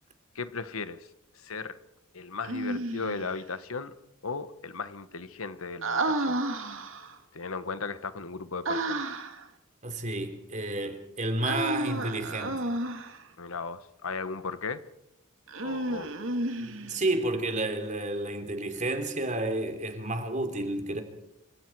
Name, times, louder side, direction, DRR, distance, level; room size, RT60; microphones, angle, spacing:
voice 1, 0.3-1.1 1.4-1.8 2.1-3.9 4.2-6.4 7.3-9.1 13.4-14.8 15.6-16.1, left 4 dB, 80° left, 1.2 m, -36 dB
Human voice, 2.4-3.3 5.8-7.2 8.6-9.4 11.4-13.2 15.5-17.1, right 2 dB, 65° right, 2.4 m, -31 dB
voice 2, 9.8-12.7 16.6-21.0, right 2 dB, 35° right, 3.3 m, -31 dB
27.0 x 25.5 x 4.7 m
head